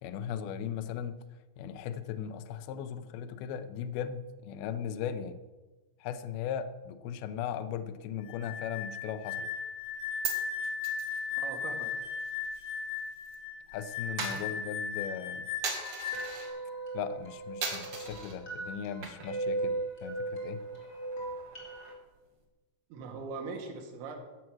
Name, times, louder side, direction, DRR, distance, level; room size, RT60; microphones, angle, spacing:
voice 1, 0.0-1.1 1.6-5.4 6.0-9.5 13.7-15.5 16.9-20.6, left 8 dB, 90° left, 10 dB, 2.2 m, -38 dB
sound 1, 8.3-16.5, left 6 dB, 60° left, 4.3 m, -37 dB
Coin (dropping), 9.8-13.4 13.6-16.5 17.0-17.2 17.6-18.4 18.8-19.5 19.8-19.9 20.2-22.1, right 4 dB, 55° right, 1.6 m, -40 dB
voice 2, 11.4-11.9 22.9-24.2, right 4 dB, 75° right, 2 dB, 4.0 m, -40 dB
sound 2, 15.7-21.9, right 2 dB, 20° left, 2.5 m, -38 dB
15.5 x 7.3 x 6.2 m, 1.2 s
omnidirectional pair, 5.3 m